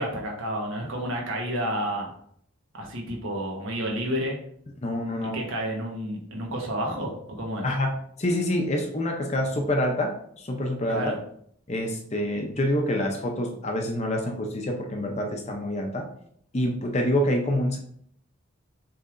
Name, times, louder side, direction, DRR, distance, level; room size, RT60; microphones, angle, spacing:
voice 1, 0.0-2.1 2.7-4.4 5.2-7.7 10.9-11.2, equal, 75° right, 0 dB, 1.2 m, -30 dB
voice 2, 4.8-5.4 7.6-11.1 11.7-16.1 16.5-17.8, left 1 dB, 30° left, 3 dB, 0.6 m, -27 dB
6.5 x 3.2 x 2.5 m, 0.66 s
head